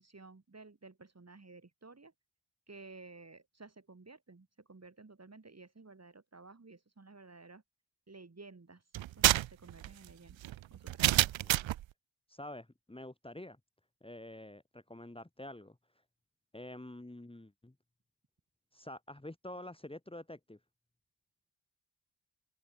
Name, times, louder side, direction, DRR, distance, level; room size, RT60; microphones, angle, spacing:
voice 1, 0.0-2.1 2.7-7.6 8.1-8.8 9.2-10.4 10.7-11.2, right 3 dB, 35° right, 7.6 m, -54 dB
sound 1, 8.9-11.8, right 14 dB, 85° right, 0.8 m, -29 dB
voice 2, 12.3-13.6 14.0-15.8 16.5-17.7 18.7-20.6, left 1 dB, 10° left, 2.9 m, -47 dB
open air
cardioid pair, 55°, 45 cm